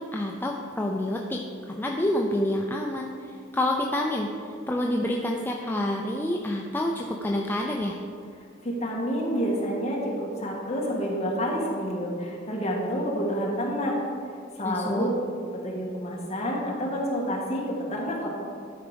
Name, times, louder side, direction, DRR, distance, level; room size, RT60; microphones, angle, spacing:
voice 1, 0.0-1.4 1.7-8.0 14.6-15.1, left 1 dB, 10° left, 0 dB, 0.5 m, -28 dB
voice 2, 8.6-14.0 14.6-15.1 15.5-18.3, equal, 35° left, -3 dB, 1.8 m, -28 dB
12.0 x 4.9 x 5.1 m, 2.4 s
head